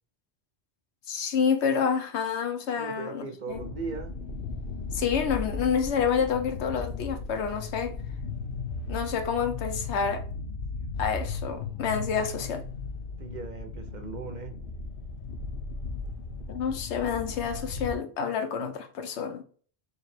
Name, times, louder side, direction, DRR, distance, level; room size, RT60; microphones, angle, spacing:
voice 1, 1.1-3.7 4.9-7.9 8.9-10.2 11.0-12.6 16.5-19.4, left 6 dB, 85° left, 1.0 m, -28 dB
voice 2, 2.7-4.2 8.9-9.0 13.2-14.6, right 4 dB, 50° right, 0.7 m, -38 dB
sound 1, 3.5-18.0, left 4 dB, 60° left, 0.8 m, -36 dB
3.3 x 2.8 x 4.3 m
omnidirectional pair, 1.1 m